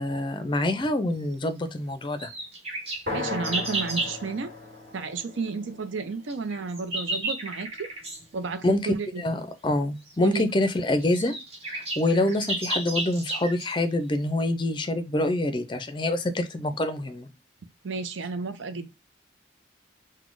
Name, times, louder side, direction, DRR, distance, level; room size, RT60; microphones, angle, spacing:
voice 1, 0.0-2.3 8.6-11.3 11.6-17.3, left 1 dB, 25° left, 0.4 m, -26 dB
sound 1, 2.2-4.2 6.3-8.2 10.1-10.2 10.7-10.8 11.0-13.7, right 2 dB, 30° right, 1.3 m, -32 dB
sound 2, 3.1-7.0, left 2 dB, 50° right, 1.9 m, -37 dB
voice 2, 3.1-4.5 4.9-7.9 8.3-9.2 10.2-10.5 17.8-18.9, right 4 dB, 80° right, 0.6 m, -32 dB
4.1 x 2.2 x 4.5 m
head